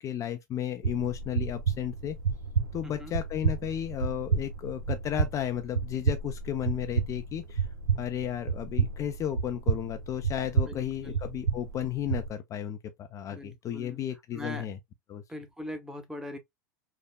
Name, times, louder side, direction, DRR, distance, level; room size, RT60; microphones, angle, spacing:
voice 1, 0.0-2.2 2.7-7.7 8.0-14.8 15.1-15.2, left 10 dB, 30° left, 0.3 m, -34 dB
sound 1, 0.8-12.3, right 5 dB, 80° right, 0.6 m, -31 dB
voice 2, 2.8-3.1 10.7-11.2 13.3-14.0 14.3-14.7 15.3-16.4, left 1 dB, 5° right, 0.7 m, -41 dB
3.4 x 2.0 x 2.2 m
hypercardioid pair, 95°, 10 cm